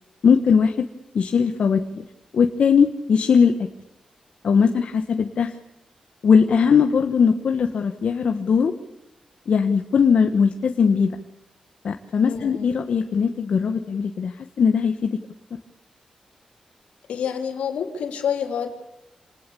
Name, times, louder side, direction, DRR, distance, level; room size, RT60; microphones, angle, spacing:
voice 1, 0.2-0.9 1.1-2.0 2.3-3.5 4.4-5.6 6.2-8.7 9.5-11.1 11.8-15.2, left 6 dB, 70° left, 6 dB, 1.4 m, -19 dB
voice 2, 12.2-12.7 17.1-18.7, left 7 dB, 85° left, 4 dB, 3.2 m, -28 dB
27.5 x 19.5 x 7.1 m, 0.91 s
cardioid pair, 50°, 2 cm